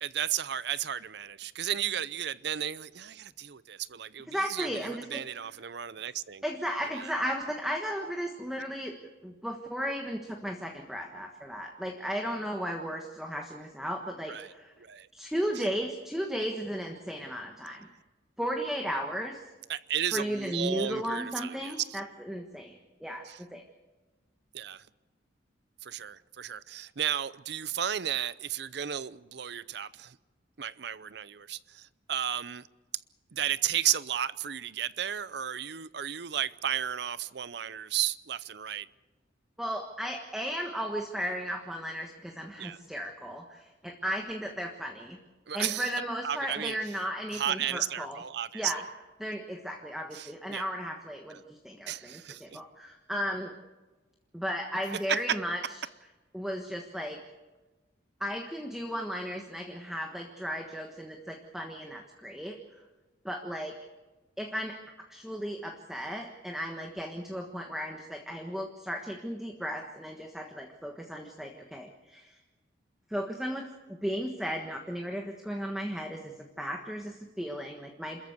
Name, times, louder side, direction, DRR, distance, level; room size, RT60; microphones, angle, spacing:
voice 1, 0.0-6.4 6.9-7.1 14.3-14.5 14.8-15.1 15.6-15.7 19.7-22.0 23.2-23.4 24.5-24.9 25.8-30.2 30.6-32.7 33.3-38.9 42.6-42.8 45.5-45.9 46.2-46.8 47.3-48.9 50.1-50.7 51.3-51.4 51.9-52.6 55.1-55.4, right 10 dB, 60° right, 0.6 m, -33 dB
voice 2, 4.3-5.2 6.4-8.9 9.2-14.7 15.1-17.9 18.4-19.4 20.1-23.6 39.6-45.2 45.5-48.2 48.5-48.8 49.2-53.5 54.3-55.6 56.3-57.2 58.2-62.6 63.2-63.7 64.4-64.8 65.1-72.4 73.1-73.6 74.0-78.2, equal, ahead, 1.4 m, -35 dB
27.5 x 14.0 x 8.1 m
head